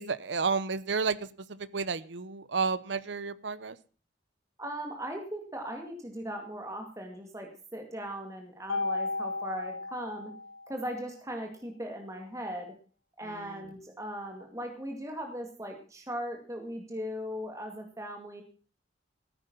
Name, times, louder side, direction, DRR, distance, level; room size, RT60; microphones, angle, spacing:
voice 1, 0.0-3.8 13.2-13.7, right 5 dB, 70° right, 16 dB, 0.8 m, -32 dB
voice 2, 4.6-10.3 10.7-12.7 13.2-18.4, equal, 15° right, 3 dB, 2.2 m, -38 dB
Mallet percussion, 8.7-10.9, left 3 dB, 90° left, 0.7 m, -34 dB
15.5 x 9.3 x 5.4 m, 0.38 s
head